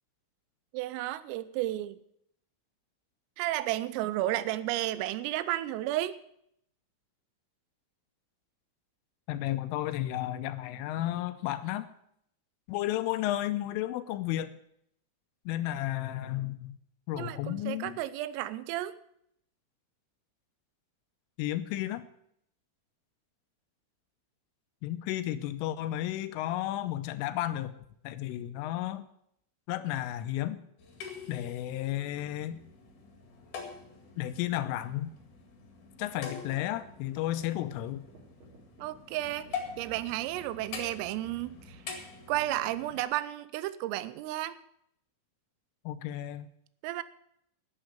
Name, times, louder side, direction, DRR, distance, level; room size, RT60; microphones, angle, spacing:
voice 1, 0.7-2.0 3.4-6.2 17.2-19.0 38.8-41.8 42.3-44.6 46.8-47.0, right 15 dB, 85° right, 15 dB, 3.3 m, -33 dB
voice 2, 9.3-11.9 12.7-14.5 15.5-16.8 17.1-18.0 21.4-22.1 24.8-27.7 28.0-29.0 29.7-30.6 31.3-32.6 34.2-35.1 36.0-38.0 45.9-46.5, left 13 dB, 80° left, 12 dB, 3.1 m, -33 dB
Tokyo - Thumb Piano, 30.8-43.0, left 5 dB, 50° left, 2.7 m, -45 dB
sound 1, 36.5-41.2, right 3 dB, 45° right, 4.4 m, -56 dB
11.5 x 8.0 x 8.9 m, 0.73 s
omnidirectional pair, 5.9 m